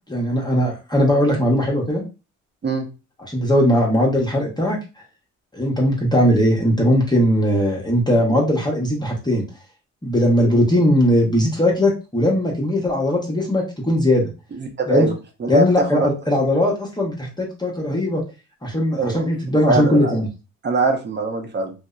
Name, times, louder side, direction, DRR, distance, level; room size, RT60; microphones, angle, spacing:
voice 1, 0.1-2.0 3.3-4.8 5.5-9.4 10.0-14.3 14.9-15.1 15.5-18.2 18.6-20.3, equal, 15° left, -2 dB, 0.8 m, -19 dB
voice 2, 14.5-15.1 15.4-16.1 19.0-19.2 19.7-20.1 20.6-21.7, right 3 dB, 35° right, 5 dB, 0.7 m, -22 dB
2.6 x 2.1 x 2.3 m, 0.30 s
supercardioid pair, 60°, 31 cm